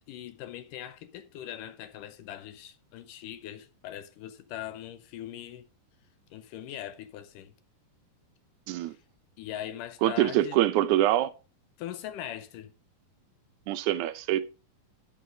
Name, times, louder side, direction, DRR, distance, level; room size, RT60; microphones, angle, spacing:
voice 1, 0.1-5.7 6.3-7.5 8.8-9.0 9.4-10.6 11.8-12.7, left 11 dB, 75° left, 2.1 m, -41 dB
voice 2, 10.0-11.3 13.7-14.4, right 14 dB, 90° right, 1.7 m, -24 dB
11.0 x 5.5 x 5.1 m
omnidirectional pair, 4.1 m